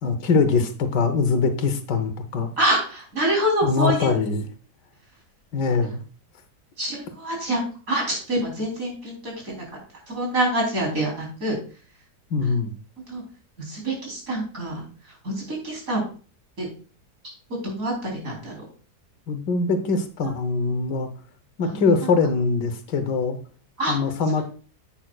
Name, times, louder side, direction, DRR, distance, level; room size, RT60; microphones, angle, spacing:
voice 1, 0.0-2.5 3.6-4.5 5.5-6.0 12.3-12.7 19.3-21.1 21.6-23.4 23.9-24.4, left 4 dB, 85° left, 8 dB, 1.7 m, -22 dB
voice 2, 2.6-4.2 5.8-5.9 6.8-9.6 10.1-11.6 13.1-13.2 13.6-14.8 15.2-16.0 16.6-16.7 17.6-18.6 20.2-20.3 21.6-22.1 23.8-23.9, right 1 dB, 50° right, -1 dB, 4.2 m, -26 dB
10.5 x 8.9 x 2.4 m, 0.39 s
omnidirectional pair, 1.8 m